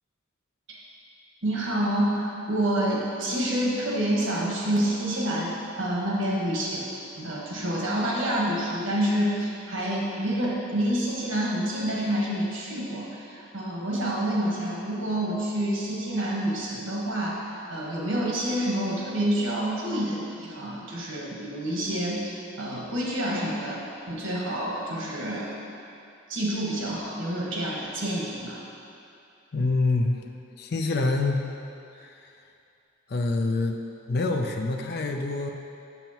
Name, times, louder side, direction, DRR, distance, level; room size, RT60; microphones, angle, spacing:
voice 1, 1.4-6.8 7.2-25.5 26.3-28.6, right 1 dB, 75° right, -4 dB, 1.3 m, -28 dB
voice 2, 29.5-30.2 30.6-31.4 32.0-32.3 33.1-33.8 34.1-35.5, left 3 dB, 55° left, 3 dB, 0.5 m, -26 dB
7.0 x 6.7 x 3.0 m, 2.6 s
head